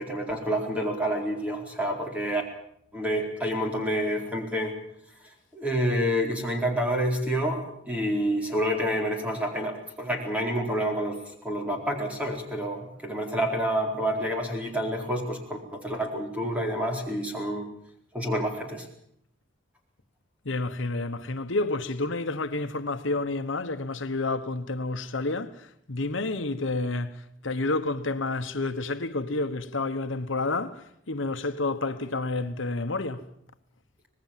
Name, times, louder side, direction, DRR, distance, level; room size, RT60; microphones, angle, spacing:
voice 1, 0.0-2.4 2.9-4.7 5.5-17.7 18.1-18.9, equal, 5° right, 4.4 m, -28 dB
voice 2, 20.4-33.3, left 2 dB, 70° left, 1.2 m, -30 dB
25.0 x 19.5 x 7.5 m
head